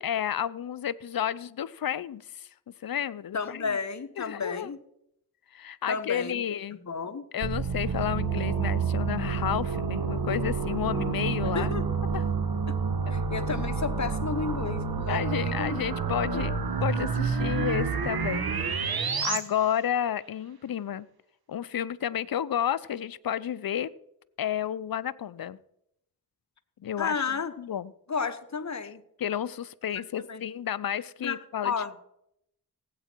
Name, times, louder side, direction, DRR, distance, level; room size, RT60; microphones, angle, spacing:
voice 1, 0.0-2.5 2.8-3.7 4.2-4.7 5.5-6.8 7.3-11.7 12.1-12.2 13.1-13.2 15.1-16.6 16.8-18.5 19.2-21.1 21.5-23.9 24.4-25.6 26.8-27.2 27.6-27.9 29.2-31.7, left 9 dB, 60° left, 17 dB, 0.6 m, -31 dB
voice 2, 3.3-4.8 5.9-7.3 11.5-11.9 12.7-12.8 13.1-15.8 16.3-16.4 27.0-27.5 28.1-29.0 30.2-30.4 31.2-32.0, left 5 dB, 45° left, 10 dB, 1.1 m, -32 dB
sound 1, 7.4-19.4, right 5 dB, 65° right, 1.5 m, -29 dB
17.5 x 8.4 x 4.5 m, 0.78 s
cardioid pair, 50°, 39 cm